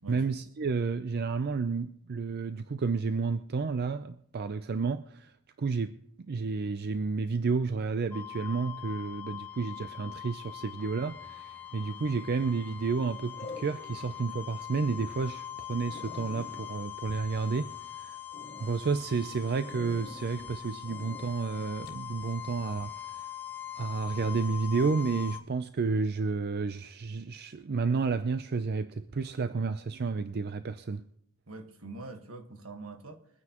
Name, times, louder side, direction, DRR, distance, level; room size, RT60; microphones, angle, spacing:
voice 1, 0.1-5.3 5.6-6.0 6.3-18.2 18.6-22.9 23.8-31.0, right 4 dB, 50° right, 0.5 m, -31 dB
sound 1, 8.1-25.4, left 10 dB, 10° left, 1.2 m, -42 dB
sound 2, 11.8-12.2 13.4-14.1 14.6-14.7 15.2-15.3 15.5-15.6 15.9-17.9 18.3-18.7 19.7-20.5 20.9-21.3 21.9-22.0, left 2 dB, 50° left, 1.6 m, -47 dB
voice 2, 31.5-33.3, right 2 dB, 75° right, 1.5 m, -44 dB
23.0 x 9.5 x 3.0 m
head